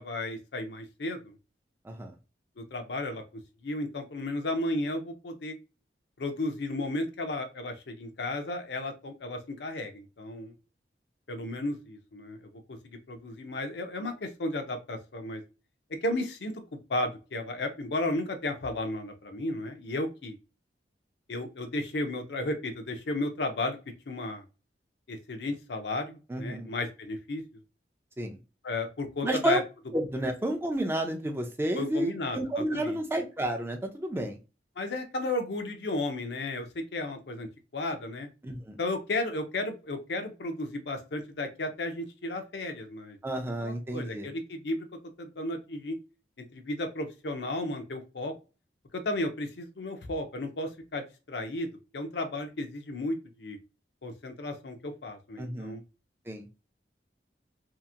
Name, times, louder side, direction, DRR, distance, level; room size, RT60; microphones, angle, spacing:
voice 1, 0.0-1.4 2.6-3.2 3.6-5.6 6.2-10.5 11.3-12.8 13.1-15.4 16.0-20.4 21.3-23.8 24.1-24.4 25.1-27.4 28.6-29.6 31.8-33.0 34.8-38.3 38.8-43.2 43.6-44.9 45.2-46.0 46.4-48.3 48.9-53.6 54.0-55.8, left 2 dB, 70° left, 6 dB, 0.6 m, -34 dB
voice 2, 26.3-26.7 28.2-28.4 29.2-29.6 29.9-34.4 38.4-38.8 43.2-44.3 55.4-55.8 56.3-56.5, right 1 dB, 15° right, 3 dB, 0.4 m, -31 dB
2.8 x 2.5 x 2.4 m, 0.31 s
head